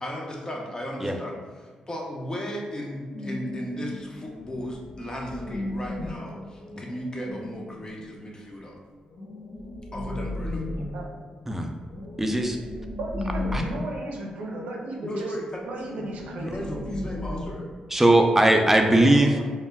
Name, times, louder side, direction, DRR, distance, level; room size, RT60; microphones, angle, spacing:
voice 1, 0.0-8.8 9.9-10.6 15.0-15.6 15.9-17.7, equal, 30° left, 0 dB, 0.6 m, -35 dB
sound 1, 3.1-8.0 9.1-14.6 14.9-15.0 15.4-18.3, left 1 dB, 85° left, 0.7 m, -35 dB
voice 2, 10.8-11.1 13.0-15.4 15.6-16.9 18.8-19.4, right 2 dB, 75° right, -1 dB, 0.5 m, -35 dB
voice 3, 12.2-12.6 13.5-13.6 17.9-19.5, right 1 dB, 10° right, 3 dB, 0.4 m, -19 dB
2.1 x 2.1 x 3.4 m, 1.5 s
supercardioid pair, 60°, 2 cm